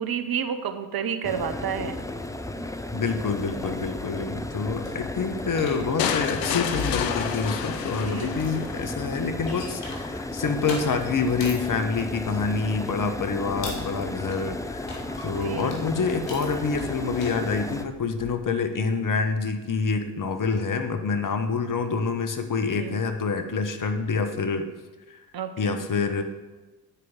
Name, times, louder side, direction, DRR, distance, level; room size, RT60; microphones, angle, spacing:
voice 1, 0.0-2.0 8.0-8.4 14.3-14.6 15.3-15.8 22.8-23.0 25.3-25.8, right 8 dB, 45° right, 7 dB, 1.1 m, -31 dB
sound 1, 1.2-17.8, left 1 dB, 5° left, 0.7 m, -34 dB
voice 2, 2.9-24.7 25.1-25.2 25.6-26.2, left 4 dB, 40° left, 7 dB, 1.3 m, -27 dB
sound 2, 3.3-18.4, left 4 dB, 65° left, 2.4 m, -41 dB
sound 3, 6.0-9.0, left 8 dB, 90° left, 0.6 m, -30 dB
9.8 x 4.8 x 7.4 m, 1.2 s
hypercardioid pair, 45°, 48 cm